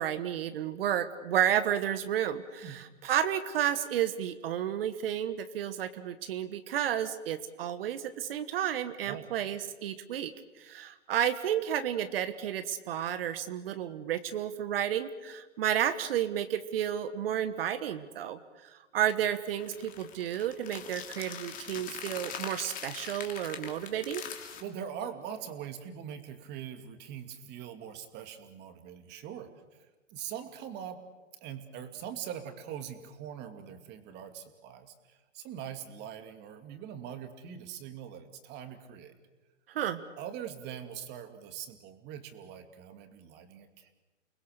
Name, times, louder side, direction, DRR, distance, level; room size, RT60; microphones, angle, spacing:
voice 1, 0.0-24.2 39.7-40.0, right 10 dB, 50° right, 11 dB, 1.4 m, -32 dB
sound 1, 19.6-24.6, left 8 dB, 20° left, 2.6 m, -42 dB
voice 2, 24.6-29.5 30.1-31.0 31.4-39.1 40.2-43.9, right 9 dB, 25° right, 7 dB, 2.4 m, -42 dB
29.5 x 21.0 x 6.7 m, 1.2 s
hypercardioid pair, 135°, 38 cm